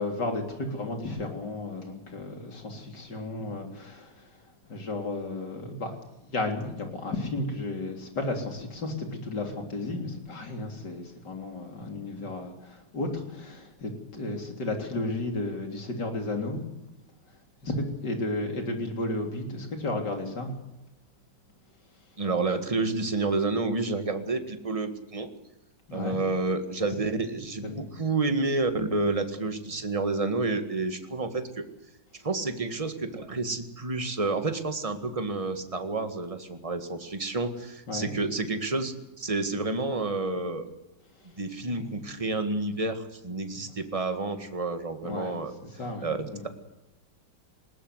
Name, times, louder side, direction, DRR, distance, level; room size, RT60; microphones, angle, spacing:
voice 1, 0.0-4.3 4.7-5.9 6.3-16.6 17.6-20.6 25.9-26.2 27.6-27.9 37.9-38.1 41.6-41.9 43.6-43.7 45.0-45.3 45.8-46.4, left 2 dB, 70° left, 4 dB, 4.0 m, -33 dB
voice 2, 22.2-25.3 25.9-31.7 32.2-40.7 41.4-45.5 46.0-46.5, right 3 dB, 20° right, 7 dB, 1.8 m, -29 dB
20.5 x 18.5 x 8.0 m, 0.99 s
omnidirectional pair, 1.9 m